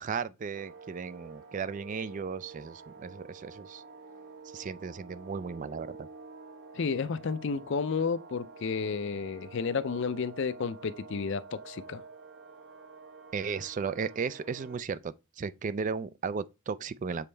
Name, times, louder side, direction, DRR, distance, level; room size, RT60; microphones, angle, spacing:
voice 1, 0.0-3.8 4.5-6.1 13.3-17.2, right 5 dB, 40° right, 0.3 m, -35 dB
sound 1, 0.5-14.8, right 4 dB, 55° right, 0.8 m, -49 dB
voice 2, 6.8-12.0, left 5 dB, 60° left, 0.5 m, -32 dB
7.0 x 4.2 x 3.3 m
head